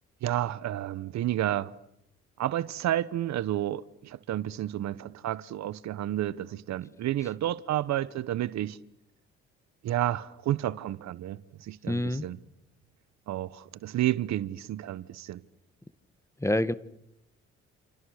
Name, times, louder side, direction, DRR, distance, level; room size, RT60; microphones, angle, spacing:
voice 1, 0.2-1.7 2.4-8.8 9.8-12.4 13.3-15.4, right 13 dB, 65° right, 1.1 m, -31 dB
voice 2, 11.9-12.3 16.4-16.7, left 1 dB, 10° left, 1.7 m, -26 dB
28.5 x 28.0 x 6.6 m
supercardioid pair, 60°, 29 cm